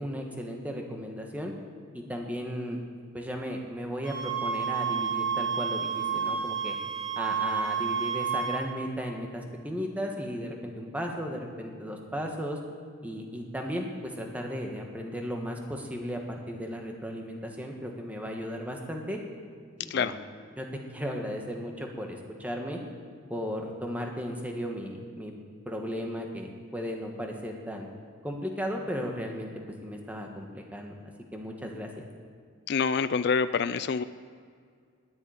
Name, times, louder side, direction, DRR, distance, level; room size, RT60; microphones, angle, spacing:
voice 1, 0.0-1.5 1.9-2.8 3.1-6.8 7.2-12.6 13.0-16.2 16.5-19.2 19.8-20.1 20.6-20.7 20.9-22.8 23.3-25.3 25.6-27.9 28.2-29.5 29.8-32.1, equal, 5° right, 1 dB, 1.4 m, -35 dB
sound 1, 4.0-8.6, right 6 dB, 25° right, 2.5 m, -30 dB
voice 2, 32.7-34.0, left 5 dB, 55° left, 13 dB, 0.4 m, -26 dB
10.5 x 9.3 x 9.6 m, 2.1 s
head